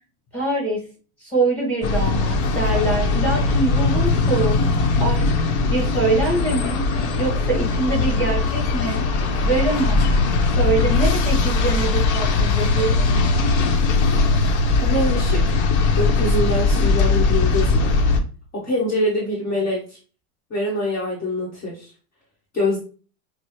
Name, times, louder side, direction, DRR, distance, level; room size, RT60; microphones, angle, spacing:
voice 1, 0.3-0.8 1.2-4.6 5.0-5.3 5.7-6.8 7.2-9.0 9.4-10.0 10.4-13.1, right 2 dB, 5° left, -3 dB, 2.0 m, -24 dB
sound 1, 1.8-18.2, left 3 dB, 55° left, 0.8 m, -20 dB
voice 2, 14.8-15.6 15.9-17.9 18.5-20.0 20.5-21.9 22.5-22.8, left 1 dB, 20° left, -5 dB, 1.0 m, -24 dB
5.5 x 2.0 x 3.1 m, 0.37 s
supercardioid pair, 150°, 43 cm